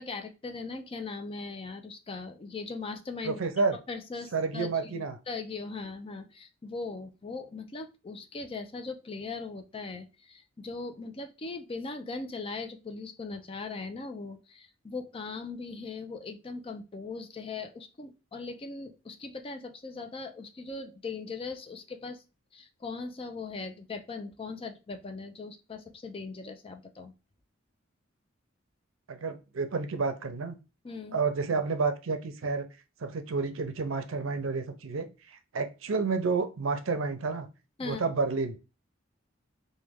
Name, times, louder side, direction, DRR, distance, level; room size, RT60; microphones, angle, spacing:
voice 1, 0.0-3.4 3.9-22.2 22.5-27.1 30.8-31.2 37.8-38.0, left 4 dB, 30° left, 7 dB, 0.4 m, -39 dB
voice 2, 3.2-3.8 4.3-5.2 29.1-30.6 31.1-32.7 33.0-37.5 37.8-38.6, right 4 dB, 80° right, 9 dB, 0.5 m, -30 dB
3.1 x 2.2 x 3.4 m, 0.29 s
head